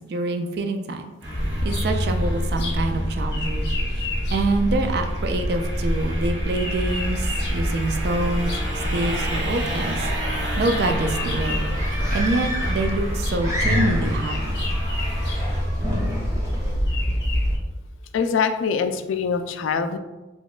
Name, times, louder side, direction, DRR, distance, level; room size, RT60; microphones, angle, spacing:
voice 1, 0.1-1.1 1.6-8.5 8.9-10.1 10.6-11.6 12.1-14.6, right 2 dB, 55° right, 5 dB, 0.3 m, -26 dB
sound 1, 1.2-15.6, right 1 dB, 75° right, 1.2 m, -33 dB
sound 2, 1.3-17.6, equal, 55° left, 0.7 m, -26 dB
sound 3, 11.4-16.8, equal, 15° right, 0.7 m, -27 dB
voice 2, 18.1-20.0, left 6 dB, 80° left, 8 dB, 0.3 m, -23 dB
4.1 x 2.9 x 2.4 m, 1.1 s
head